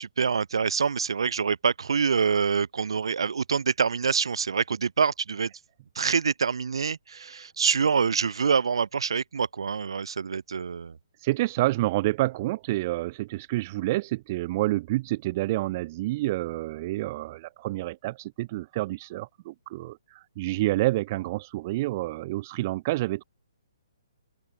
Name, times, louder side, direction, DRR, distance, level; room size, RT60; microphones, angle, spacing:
voice 1, 0.0-5.5 5.9-11.0, right 6 dB, 80° right, 1.1 m, -26 dB
voice 2, 11.2-23.2, right 18 dB, 30° right, 0.7 m, -28 dB
open air
hypercardioid pair, 160°, 3 cm